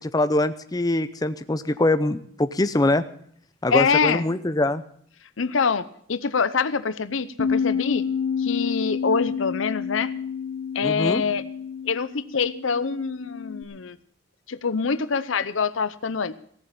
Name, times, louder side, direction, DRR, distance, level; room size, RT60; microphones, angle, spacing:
voice 1, 0.0-3.0 3.6-4.8 10.8-11.2, left 2 dB, 20° left, 11 dB, 0.6 m, -23 dB
voice 2, 3.7-4.2 5.4-8.0 8.4-10.1 10.7-11.4 11.9-14.0 14.5-16.3, left 5 dB, 85° left, 14 dB, 0.7 m, -25 dB
Bass guitar, 7.4-13.6, left 6 dB, 65° left, 1.1 m, -29 dB
17.0 x 7.4 x 8.5 m, 0.63 s
head